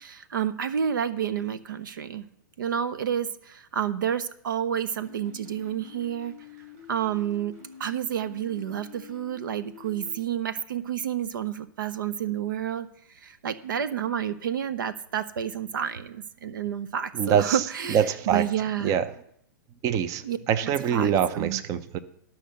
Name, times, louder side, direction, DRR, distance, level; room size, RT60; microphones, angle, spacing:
voice 1, 0.0-2.3 2.6-6.4 6.9-7.5 7.8-12.9 13.2-19.0 20.2-20.4 20.6-21.6, right 9 dB, 75° right, 14 dB, 0.7 m, -30 dB
sound 1, 5.0-10.2, left 7 dB, 50° right, 4.1 m, -47 dB
voice 2, 17.1-18.5 18.8-19.1 19.8-22.0, right 8 dB, 30° right, 13 dB, 0.7 m, -25 dB
12.5 x 5.7 x 6.5 m, 0.71 s
hypercardioid pair, 130°, 11 cm